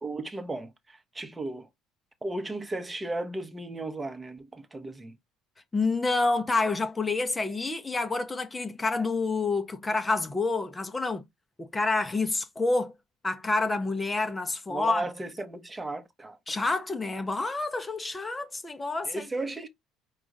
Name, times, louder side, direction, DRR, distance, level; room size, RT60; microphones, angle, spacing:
voice 1, 0.0-1.7 2.2-5.1 14.7-16.4 19.0-19.7, right 2 dB, 20° right, 0.9 m, -35 dB
voice 2, 5.7-11.2 11.6-12.9 13.2-15.0 16.5-19.3, left 3 dB, 20° left, 0.7 m, -28 dB
4.8 x 2.4 x 3.7 m
figure-of-eight pair, 60°, 0 cm